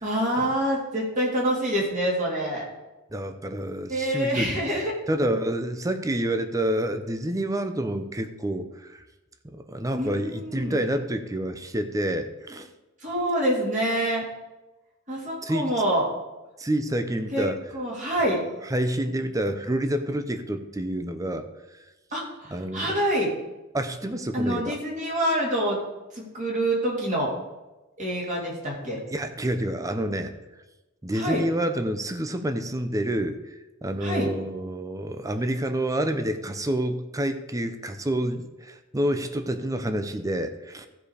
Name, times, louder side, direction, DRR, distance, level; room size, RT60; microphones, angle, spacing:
voice 1, 0.0-2.6 3.9-4.9 9.9-10.8 13.0-14.2 15.1-16.1 17.3-17.4 17.7-18.4 22.1-23.3 24.3-25.8 26.1-27.3 28.0-29.0 31.1-31.4 34.0-34.3, right 1 dB, 40° right, -4 dB, 3.2 m, -26 dB
voice 2, 3.1-9.0 9.4-12.7 15.4-15.7 16.6-17.6 18.6-21.5 22.5-23.0 23.7-24.8 29.1-30.3 31.0-33.4 33.8-40.9, right 1 dB, 15° right, 8 dB, 0.7 m, -28 dB
14.5 x 5.1 x 5.0 m, 1.1 s
head